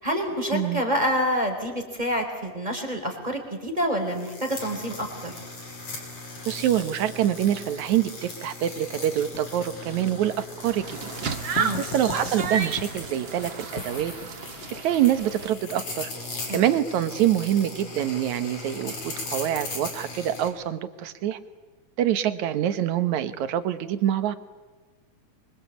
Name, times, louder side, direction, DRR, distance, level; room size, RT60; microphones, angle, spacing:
voice 1, 0.0-5.3 11.6-11.8 16.5-16.7, equal, 15° right, 3 dB, 4.1 m, -27 dB
sound 1, 4.1-20.5, left 3 dB, 55° left, 6.3 m, -38 dB
voice 2, 6.5-11.1 11.8-14.1 14.8-16.1 16.5-21.4 22.0-24.4, right 11 dB, 75° right, 11 dB, 2.6 m, -25 dB
Writing, 9.3-15.3, left 3 dB, 40° left, 2.8 m, -40 dB
sound 2, 10.6-15.5, right 6 dB, 50° right, 1.9 m, -33 dB
25.5 x 24.0 x 8.5 m, 1.3 s
omnidirectional pair, 3.5 m